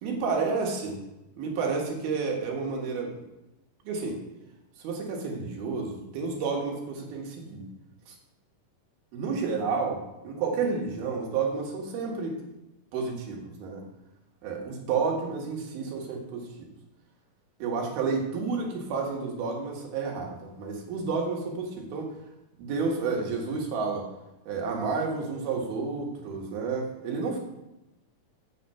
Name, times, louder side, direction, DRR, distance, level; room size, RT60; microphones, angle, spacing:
voice 1, 0.0-1.0 1.4-3.1 3.8-4.2 4.8-7.7 8.1-8.2 9.1-12.4 12.9-13.8 14.4-16.7 17.6-22.1 22.6-24.1 24.5-27.4, right 4 dB, 85° right, 0 dB, 3.4 m, -30 dB
8.4 x 5.8 x 5.6 m, 0.95 s
omnidirectional pair, 4.3 m